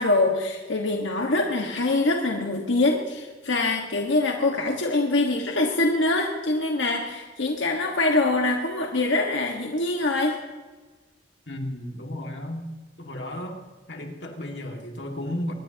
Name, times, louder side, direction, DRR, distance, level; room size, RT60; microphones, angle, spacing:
voice 1, 0.0-10.4, left 2 dB, 80° left, 1 dB, 1.6 m, -24 dB
voice 2, 11.5-12.7 13.0-13.6 13.9-15.5, left 1 dB, 65° left, 2 dB, 2.1 m, -33 dB
23.5 x 20.5 x 2.9 m, 1.3 s
head